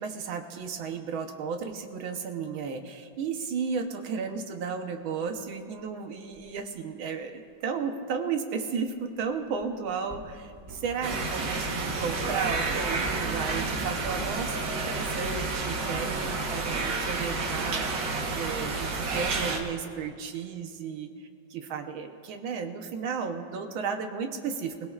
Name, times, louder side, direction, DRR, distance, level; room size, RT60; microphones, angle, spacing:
voice 1, 0.0-24.9, right 6 dB, 90° right, 5 dB, 1.8 m, -34 dB
sound 1, 3.6-3.7 5.3-6.5 8.8-9.7 10.1-14.3, equal, 10° right, 4.5 m, -43 dB
sound 2, 11.0-19.6, right 3 dB, 70° right, 1.9 m, -30 dB
26.0 x 17.0 x 2.4 m, 2.3 s
omnidirectional pair, 2.1 m